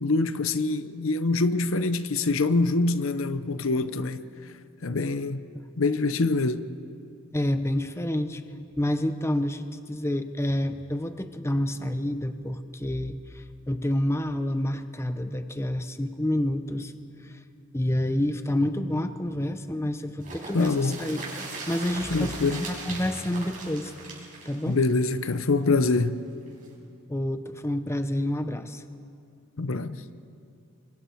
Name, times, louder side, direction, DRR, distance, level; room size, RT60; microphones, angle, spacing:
voice 1, 0.0-4.2 4.8-5.4 5.8-6.6 20.5-21.0 22.1-22.6 24.7-26.2 29.6-30.0, left 3 dB, 65° left, 0.8 m, -25 dB
voice 2, 7.3-8.4 8.8-16.9 17.2-17.4 17.7-23.9 24.4-24.8 27.1-28.8, left 1 dB, 10° left, 0.7 m, -28 dB
sound 1, 20.2-25.9 26.3-26.4 26.6-26.7, right 3 dB, 40° right, 6.2 m, -39 dB
29.5 x 23.5 x 4.6 m
head